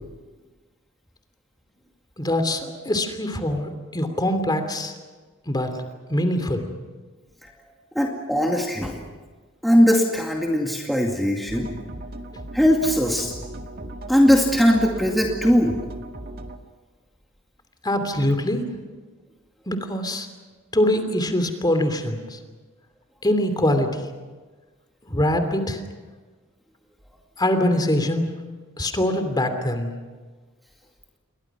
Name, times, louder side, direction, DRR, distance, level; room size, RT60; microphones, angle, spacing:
voice 1, 2.2-4.9 5.4-5.7 6.1-6.6 17.8-18.6 19.7-20.3 20.7-22.4 23.2-24.1 25.0-25.8 27.4-28.3 28.8-29.9, left 1 dB, 20° left, 7 dB, 2.9 m, -23 dB
voice 2, 8.0-9.0 9.6-11.7 12.5-13.3 14.1-15.8, equal, ahead, -1 dB, 2.2 m, -19 dB
sound 1, 11.5-16.6, right 1 dB, 45° right, 1.9 m, -37 dB
29.0 x 22.5 x 6.1 m, 1.4 s
head